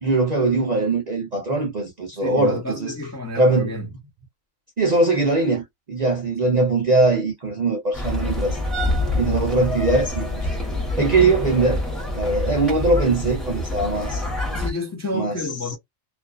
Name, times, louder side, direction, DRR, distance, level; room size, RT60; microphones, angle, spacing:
voice 1, 0.0-2.9 3.4-3.7 4.8-8.6 9.1-10.6 11.0-11.8 12.1-14.2 15.1-15.3, right 2 dB, 50° right, 0.5 m, -21 dB
voice 2, 2.1-3.9 6.4-6.7 14.5-15.8, left 2 dB, 25° left, 0.3 m, -31 dB
sound 1, 7.9-14.7, left 1 dB, ahead, 0.8 m, -26 dB
2.5 x 2.3 x 2.3 m
omnidirectional pair, 1.4 m